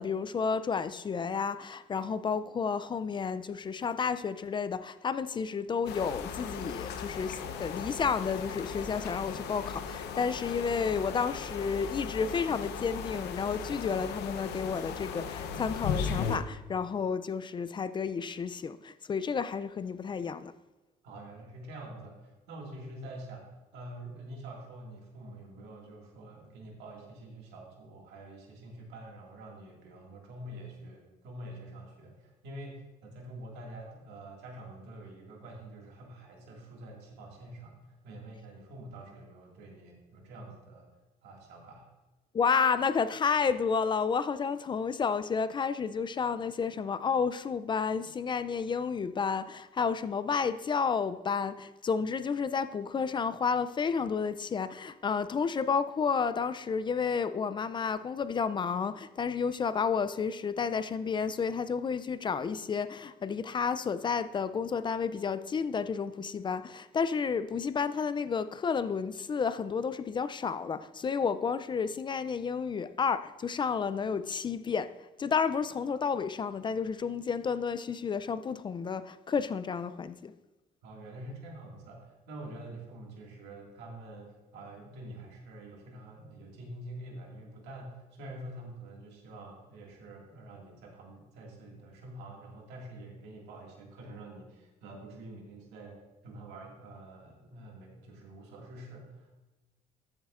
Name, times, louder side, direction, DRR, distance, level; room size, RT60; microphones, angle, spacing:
voice 1, 0.0-20.5 42.3-80.3, left 6 dB, 30° left, 0.4 m, -31 dB
sound 1, 5.9-16.4, left 6 dB, 80° left, 0.8 m, -37 dB
voice 2, 21.0-37.8 38.0-40.9 41.2-41.9 80.8-99.3, right 1 dB, 90° right, 2.1 m, -46 dB
13.5 x 7.2 x 2.5 m
cardioid pair, 110°, 17 cm